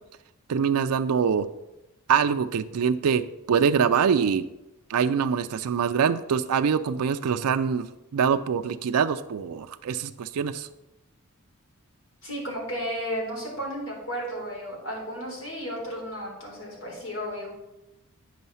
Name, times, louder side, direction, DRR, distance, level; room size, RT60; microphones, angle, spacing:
voice 1, 0.5-1.5 2.1-4.5 4.9-10.7, right 6 dB, 80° right, 9 dB, 0.4 m, -24 dB
voice 2, 12.2-17.6, equal, 60° left, -3 dB, 3.8 m, -33 dB
9.3 x 5.5 x 5.6 m, 0.95 s
head